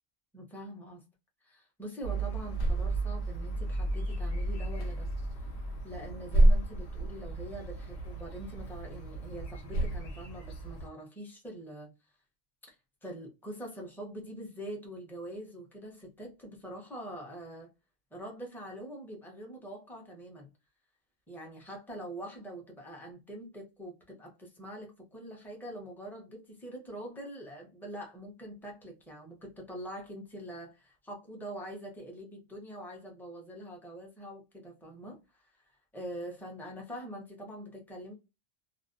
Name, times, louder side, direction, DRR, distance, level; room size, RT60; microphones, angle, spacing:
voice 1, 0.3-1.0 1.4-5.1 5.4-5.5 5.8-11.9 12.7-12.8 13.0-17.7 18.1-20.5 21.3-38.1, right 1 dB, ahead, 0.5 m, -44 dB
sound 1, 2.0-10.9, right 1 dB, 60° left, 0.9 m, -30 dB
2.4 x 2.1 x 2.5 m
omnidirectional pair, 1.3 m